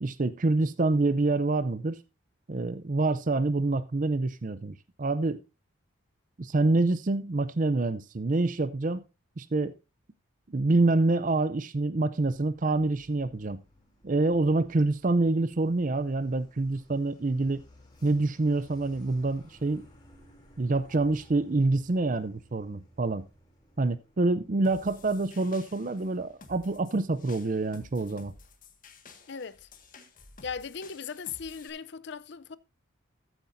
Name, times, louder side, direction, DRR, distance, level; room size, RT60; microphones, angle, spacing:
voice 1, 0.0-2.0 2.5-5.4 6.4-9.0 9.4-9.7 10.5-13.6 14.0-17.6 18.0-19.9 20.6-23.2 23.8-28.3, right 2 dB, 40° right, 0.5 m, -26 dB
Truck, 12.2-28.4, left 1 dB, 20° left, 2.9 m, -59 dB
sound 1, 24.6-31.7, left 4 dB, 40° left, 1.6 m, -53 dB
voice 2, 29.3-29.7 30.4-32.6, left 6 dB, 55° left, 0.5 m, -38 dB
14.0 x 8.5 x 2.6 m
head